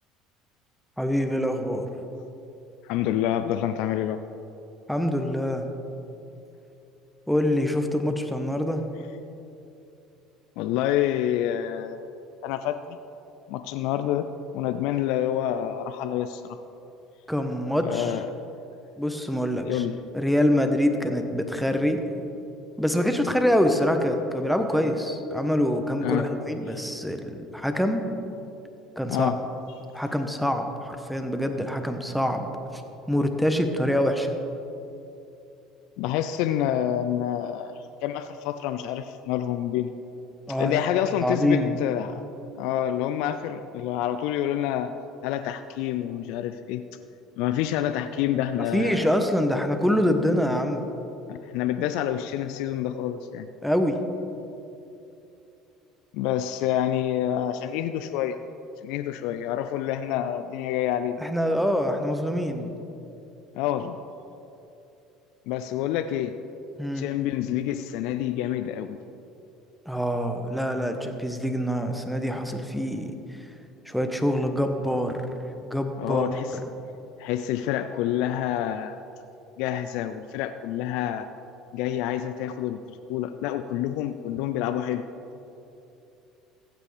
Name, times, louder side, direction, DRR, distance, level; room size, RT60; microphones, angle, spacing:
voice 1, 1.0-1.9 4.9-5.7 7.3-8.8 17.3-18.1 19.0-19.8 20.1-22.0 22.8-28.0 29.0-29.3 29.9-32.8 33.1-34.4 40.5-40.8 41.2-41.8 48.7-50.8 53.6-54.0 61.2-62.7 66.8-67.1 69.9-73.1 73.9-75.2 75.6-76.6, equal, ahead, 6 dB, 1.1 m, -25 dB
voice 2, 2.8-4.2 10.6-12.0 12.4-13.0 13.5-14.3 14.5-16.6 17.8-18.3 19.6-20.0 26.0-26.3 29.1-29.4 36.0-37.7 38.0-39.9 40.6-42.3 42.6-44.9 45.2-46.8 47.4-49.1 51.3-53.5 56.1-58.4 58.8-61.2 63.5-64.0 65.5-66.4 66.9-69.0 76.0-76.6 77.2-79.0 79.6-81.3 81.7-82.8 83.1-85.0, left 11 dB, 70° left, 10 dB, 0.3 m, -27 dB
15.5 x 8.2 x 3.4 m, 2.8 s
hypercardioid pair, 70°, 0 cm